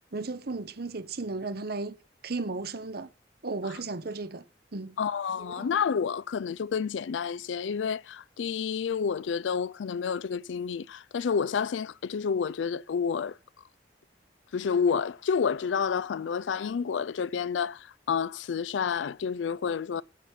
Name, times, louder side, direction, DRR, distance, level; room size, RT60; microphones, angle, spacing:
voice 1, 0.1-2.0 2.2-3.1 3.4-4.5 4.7-5.0 5.4-5.7, right 3 dB, 60° right, 1.0 m, -35 dB
voice 2, 5.0-13.4 14.5-20.0, left 6 dB, 90° left, 0.4 m, -29 dB
9.5 x 8.3 x 4.4 m
head